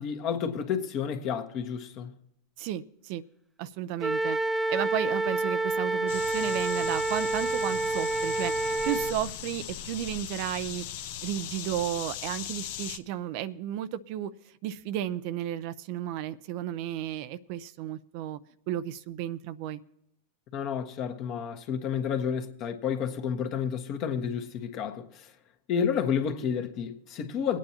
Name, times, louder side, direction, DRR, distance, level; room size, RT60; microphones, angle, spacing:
voice 1, 0.0-2.1 20.5-25.3 25.7-27.6, left 7 dB, 50° left, 1.4 m, -30 dB
voice 2, 2.6-3.2 3.6-4.4 4.7-10.8 11.2-14.3 14.6-18.4 18.7-19.8, right 12 dB, 55° right, 0.5 m, -33 dB
Wind instrument woodwind instrument, 4.0-9.2, right 2 dB, 10° right, 0.7 m, -28 dB
sound 1, 6.1-13.0, left 10 dB, 65° left, 0.7 m, -39 dB
23.0 x 9.0 x 2.9 m
hypercardioid pair, 105°, 0 cm